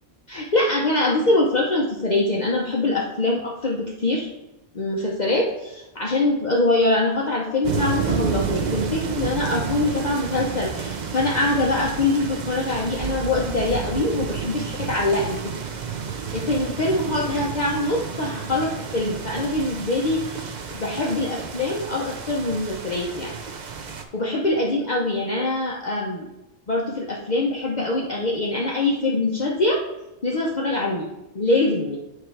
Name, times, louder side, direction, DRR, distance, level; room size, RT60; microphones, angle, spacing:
voice 1, 0.3-4.3 4.7-15.4 16.3-23.3 24.1-26.3 26.7-29.8 30.2-31.1 31.3-32.0, left 2 dB, 40° left, -3 dB, 0.9 m, -23 dB
sound 1, 7.6-24.0, right 6 dB, 45° right, 0.7 m, -30 dB
9.7 x 3.3 x 4.7 m, 0.95 s
omnidirectional pair, 1.2 m